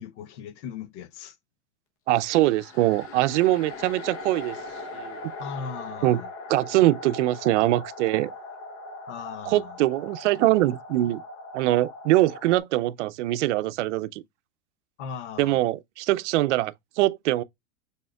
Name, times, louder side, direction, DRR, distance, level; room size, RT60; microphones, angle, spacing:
voice 1, 0.0-1.4 5.4-6.3 9.1-9.8 15.0-15.6, left 6 dB, 75° left, 0.9 m, -38 dB
sound 1, 2.1-12.6, left 2 dB, 40° left, 0.9 m, -40 dB
voice 2, 2.1-4.6 4.9-5.2 6.0-6.2 6.5-8.3 9.5-11.2 11.5-14.2 15.4-17.4, right 16 dB, 80° right, 0.6 m, -23 dB
6.3 x 3.6 x 2.2 m
supercardioid pair, 140°, 35 cm